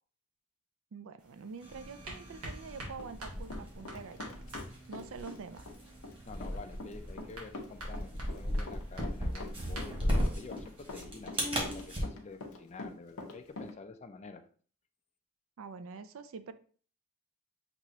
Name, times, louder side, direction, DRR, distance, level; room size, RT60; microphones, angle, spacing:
voice 1, 0.9-4.4 4.9-5.7 15.6-16.5, right 5 dB, 65° right, 11 dB, 0.4 m, -46 dB
sound 1, 1.2-11.0, right 1 dB, 80° right, 1.7 m, -50 dB
sound 2, 1.6-12.0, equal, 25° right, 1.3 m, -37 dB
Run, 3.0-4.7 4.9-13.7, left 2 dB, 70° left, 0.8 m, -44 dB
voice 2, 6.3-14.4, left 4 dB, 30° left, 7 dB, 0.4 m, -48 dB
6.1 x 3.0 x 2.8 m, 0.42 s
head